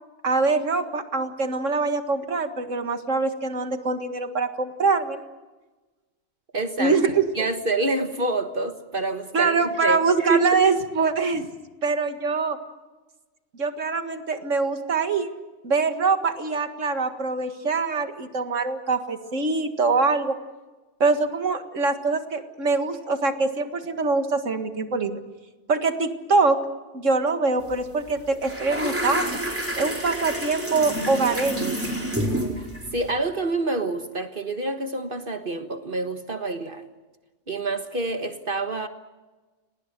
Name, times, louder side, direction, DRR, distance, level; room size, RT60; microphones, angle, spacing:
voice 1, 0.2-5.2 6.8-7.3 9.3-11.5 11.8-12.6 13.6-15.3 15.6-20.4 21.0-25.2 25.7-26.6 26.9-29.3 29.8-31.7, right 4 dB, 85° right, 7 dB, 2.2 m, -24 dB
voice 2, 6.5-7.0 7.3-10.0 10.3-10.6 32.9-36.8 37.5-38.9, right 2 dB, 45° right, 7 dB, 1.6 m, -27 dB
sound 1, 27.6-27.8 28.1-33.1, right 1 dB, 10° right, 4.6 m, -29 dB
30.0 x 19.5 x 6.7 m, 1.2 s
omnidirectional pair, 1.3 m